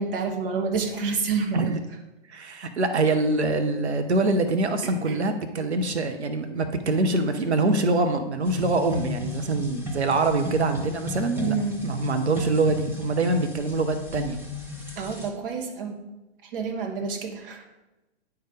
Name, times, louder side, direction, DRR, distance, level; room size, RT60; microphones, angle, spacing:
voice 1, 0.0-1.7 4.8-5.2 11.3-11.8 15.0-16.0 16.5-17.6, right 5 dB, 55° right, 3 dB, 1.7 m, -28 dB
voice 2, 2.3-11.6 11.8-14.4, right 2 dB, 85° right, 7 dB, 1.0 m, -24 dB
sound 1, 8.4-15.3, left 3 dB, 5° right, 1.1 m, -35 dB
9.0 x 4.8 x 5.0 m, 1.0 s
hypercardioid pair, 120°, 33 cm